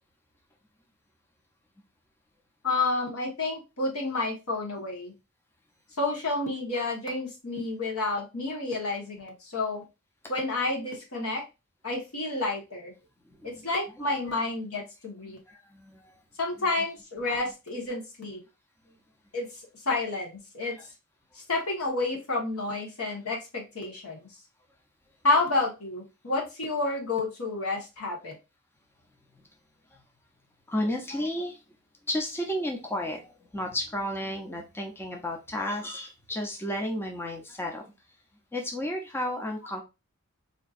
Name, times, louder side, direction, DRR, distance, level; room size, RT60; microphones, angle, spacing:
voice 1, 2.6-5.1 6.0-9.8 10.3-11.4 11.8-12.9 13.4-15.4 16.4-18.4 19.3-20.8 21.4-24.3 25.2-28.4, left 3 dB, 80° left, 0 dB, 1.3 m, -30 dB
voice 2, 13.3-13.6 14.3-14.4 15.2-16.2 20.7-20.9 29.9-30.0 30.7-31.6 32.1-37.8 38.5-39.8, left 1 dB, 10° left, 1 dB, 0.5 m, -33 dB
4.2 x 2.7 x 2.5 m, 0.26 s
head